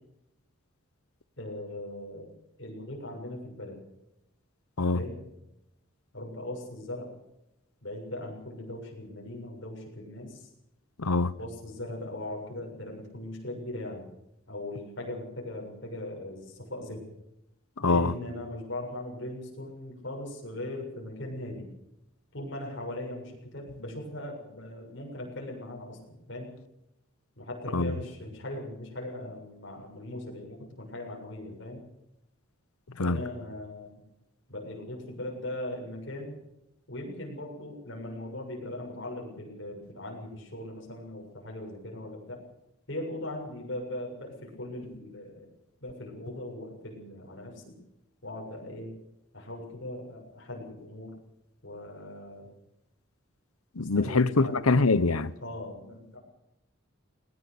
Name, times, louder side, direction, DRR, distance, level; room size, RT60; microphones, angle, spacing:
voice 1, 1.4-2.3 2.6-3.8 4.9-5.2 6.1-7.1 7.8-10.5 11.4-14.1 14.5-17.0 17.8-21.7 22.3-26.5 27.4-31.8 33.0-34.0 34.5-36.4 36.9-42.4 42.9-45.5 45.8-47.7 48.2-49.0 49.3-51.1 51.6-52.5 53.8-54.6 55.4-56.2, left 1 dB, 55° left, 7.1 m, -39 dB
voice 2, 11.0-11.3 17.8-18.1 27.7-27.9 33.0-33.2 53.8-55.3, left 3 dB, 90° left, 1.0 m, -24 dB
20.0 x 19.5 x 6.9 m
head